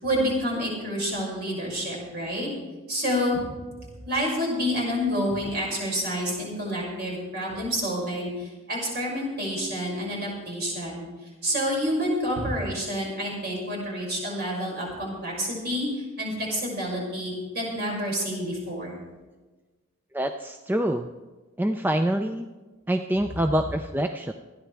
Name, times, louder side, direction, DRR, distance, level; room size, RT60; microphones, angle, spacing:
voice 1, 0.0-2.5 2.9-3.4 4.0-11.0 11.4-19.0, equal, 50° right, -4 dB, 6.1 m, -28 dB
voice 2, 20.1-21.1 21.6-22.5 22.9-24.3, right 1 dB, 10° right, 6 dB, 0.4 m, -25 dB
26.5 x 10.5 x 3.4 m, 1.3 s
head